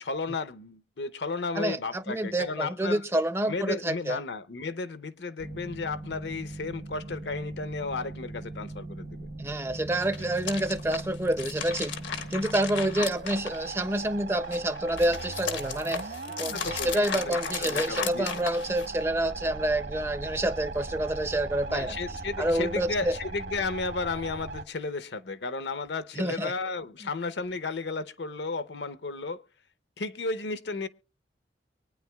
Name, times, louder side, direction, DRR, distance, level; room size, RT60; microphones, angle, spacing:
voice 1, 0.0-3.0 3.5-9.3 16.5-18.4 21.7-29.4 30.0-30.9, left 3 dB, 70° left, 0.7 m, -34 dB
voice 2, 1.6-4.2 9.4-11.9 12.3-23.1 26.1-26.5, right 1 dB, 15° right, 0.5 m, -28 dB
sound 1, 5.4-24.6, right 3 dB, 65° right, 1.1 m, -39 dB
sound 2, 9.9-14.0 14.4-19.0, left 7 dB, 90° left, 1.4 m, -36 dB
24.0 x 9.5 x 2.3 m
head